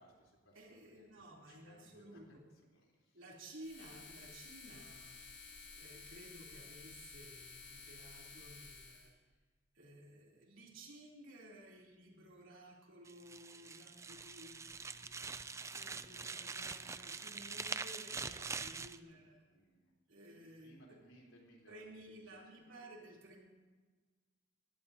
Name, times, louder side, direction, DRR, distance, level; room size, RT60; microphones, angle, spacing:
voice 1, 0.0-2.2 2.7-3.2 16.1-16.3 19.0-19.9 20.3-22.2 22.7-22.8, equal, 85° left, -2 dB, 3.7 m, -64 dB
voice 2, 0.5-2.5 3.1-5.5 5.8-9.1 9.7-19.5 20.1-21.0 21.7-23.4, right 1 dB, 75° right, -2 dB, 3.4 m, -56 dB
sound 1, 3.6-9.1, left 5 dB, 60° left, 2.7 m, -53 dB
sound 2, 13.1-19.0, right 4 dB, 15° right, 0.3 m, -44 dB
20.5 x 16.5 x 2.8 m, 1.3 s
head